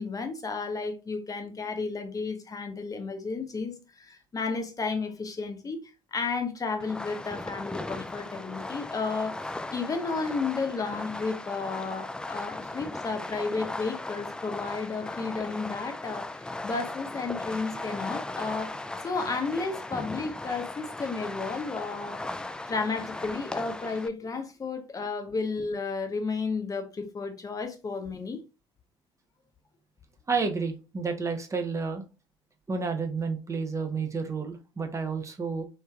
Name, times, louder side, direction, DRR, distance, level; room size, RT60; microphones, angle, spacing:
voice 1, 0.0-5.8 6.1-22.2 22.7-28.4, left 4 dB, 30° left, 0.7 m, -33 dB
Fireworks, 6.8-24.1, left 2 dB, 5° left, 0.3 m, -37 dB
voice 2, 30.3-32.0 32.7-35.6, right 4 dB, 25° right, 0.7 m, -30 dB
3.1 x 2.7 x 2.3 m
hypercardioid pair, 60°, 13 cm